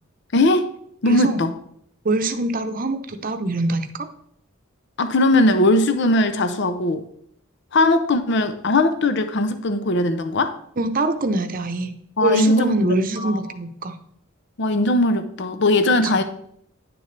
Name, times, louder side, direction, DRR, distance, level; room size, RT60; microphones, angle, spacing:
voice 1, 0.3-0.7 1.0-1.5 5.0-7.0 7.7-10.6 12.2-12.7 13.2-13.4 14.6-16.2, left 2 dB, 60° left, 0.6 m, -19 dB
voice 2, 1.1-1.4 2.0-4.1 10.8-11.9 12.2-14.0, right 2 dB, 45° right, 0.7 m, -23 dB
10.0 x 6.8 x 3.3 m
head